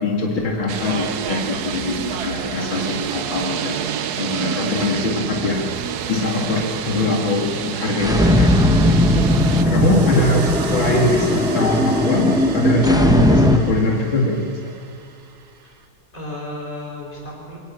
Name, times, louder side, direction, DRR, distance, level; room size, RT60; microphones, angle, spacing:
voice 1, 0.0-5.7 6.1-9.3 9.6-14.7, left 2 dB, 75° left, -1 dB, 3.0 m, -22 dB
sound 1, 0.7-9.6, right 8 dB, 60° right, 1.2 m, -28 dB
sound 2, 8.0-13.6, left 1 dB, 5° right, 0.8 m, -17 dB
sound 3, 8.9-15.8, right 5 dB, 85° right, 2.3 m, -36 dB
voice 2, 16.1-17.6, left 1 dB, 25° left, -3 dB, 6.0 m, -34 dB
25.0 x 18.0 x 7.5 m, 2.4 s
omnidirectional pair, 2.2 m